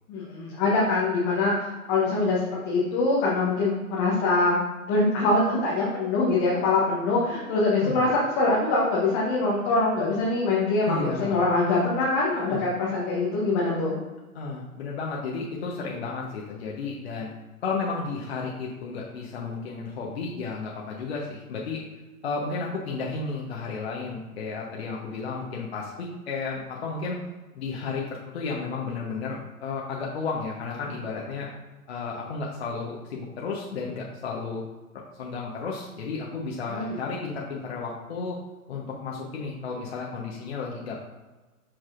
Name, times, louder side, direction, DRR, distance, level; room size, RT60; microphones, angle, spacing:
voice 1, 0.1-4.6 4.8-8.1 8.3-14.0 36.7-37.0, left 3 dB, 20° left, -5 dB, 0.9 m, -24 dB
voice 2, 10.8-11.4 12.5-12.6 14.3-17.3 17.6-21.8 22.2-27.2 27.5-31.5 31.9-34.6 35.2-38.4 38.7-41.0, left 4 dB, 45° left, -2 dB, 1.0 m, -33 dB
6.6 x 5.9 x 2.5 m, 1.2 s
figure-of-eight pair, 120°, 45 cm